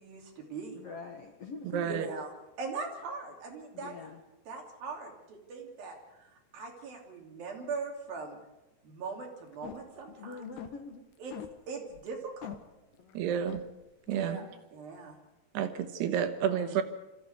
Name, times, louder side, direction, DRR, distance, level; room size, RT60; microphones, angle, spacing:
voice 1, 0.0-0.8 1.8-2.3 2.6-3.9 4.5-8.4 8.8-10.4 11.2-11.3 11.7-12.6 14.2-14.5 14.7-15.2, right 4 dB, 65° right, 1 dB, 4.7 m, -40 dB
voice 2, 0.7-2.0 3.7-4.2 10.1-11.1 12.9-13.3 14.1-14.5 16.4-16.8, left 4 dB, 55° left, 3 dB, 1.8 m, -45 dB
voice 3, 1.7-2.1 13.1-13.6 14.1-14.4 15.5-16.8, right 8 dB, 90° right, 8 dB, 3.5 m, -30 dB
sound 1, 9.5-10.0 10.3-10.8 11.3-11.5 11.9-12.1 12.4-12.6 13.1-13.2 13.5-13.6, left 11 dB, 75° left, 3.2 m, -42 dB
25.5 x 14.5 x 8.1 m, 1.0 s
omnidirectional pair, 4.6 m